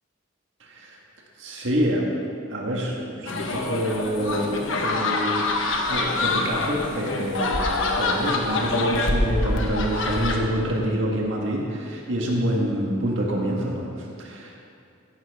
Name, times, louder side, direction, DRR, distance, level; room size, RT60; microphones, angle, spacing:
voice 1, 0.6-1.0 1.4-5.4 5.9-14.6, equal, 70° right, -2 dB, 1.6 m, -27 dB
sound 1, 3.3-10.4, left 2 dB, 75° left, 1.3 m, -25 dB
16.0 x 12.0 x 3.6 m, 2.5 s
head